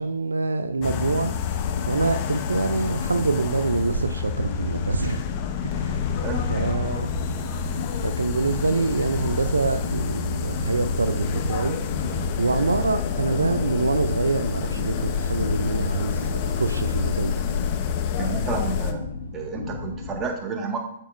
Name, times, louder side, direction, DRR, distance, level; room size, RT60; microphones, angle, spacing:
voice 1, 0.0-5.2 5.6-6.0 6.5-7.2 8.0-11.8 12.1-17.4, right 3 dB, 85° right, 0.4 m, -26 dB
sound 1, 0.7-20.2, left 3 dB, 75° left, 1.1 m, -35 dB
sound 2, 0.8-18.9, left 7 dB, 40° left, 0.7 m, -28 dB
voice 2, 6.2-6.7 18.2-19.0 19.3-20.8, right 5 dB, 20° right, 1.6 m, -30 dB
8.3 x 7.3 x 2.5 m
hypercardioid pair, 120°, 0 cm